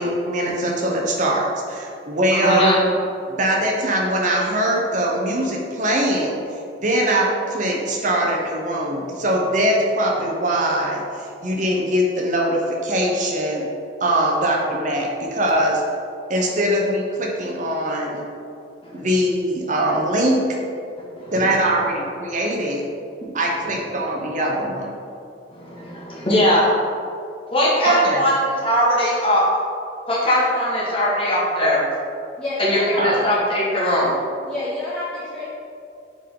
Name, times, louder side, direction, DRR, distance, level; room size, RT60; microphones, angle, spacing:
voice 1, 0.0-2.7 3.3-6.4 6.8-13.7 14.0-15.8 16.3-18.2 18.9-20.4 21.3-22.8 23.3-24.9 27.8-28.2 33.0-33.1, right 1 dB, 45° right, -1 dB, 0.7 m, -22 dB
voice 2, 2.4-2.8 18.8-18.9 21.2-21.3 25.5-26.6 27.5-29.4 30.1-31.8 32.6-34.1, equal, 30° left, -6 dB, 1.4 m, -20 dB
voice 3, 32.4-33.3 34.5-35.4, left 1 dB, 5° left, -10 dB, 0.8 m, -28 dB
7.2 x 3.7 x 3.7 m, 2.5 s
head